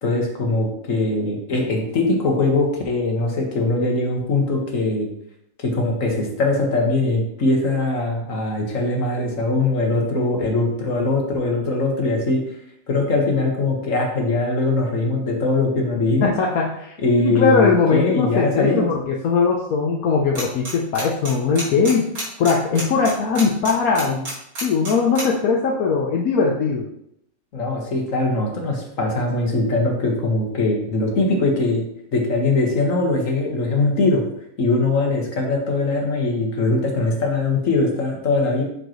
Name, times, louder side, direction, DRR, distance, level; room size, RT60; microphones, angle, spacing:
voice 1, 0.0-5.1 5.6-12.6 12.9-16.3 17.0-18.9 27.5-31.8 32.1-34.3 34.6-38.6, left 2 dB, 65° left, 1 dB, 1.9 m, -21 dB
voice 2, 16.2-17.0 17.2-22.1 22.4-24.3 24.6-26.8, left 5 dB, 85° left, -1 dB, 1.3 m, -20 dB
sound 1, 20.4-20.7 21.0-25.2, right 1 dB, 85° right, 2.9 m, -29 dB
7.7 x 6.5 x 3.1 m, 0.76 s
omnidirectional pair, 1.5 m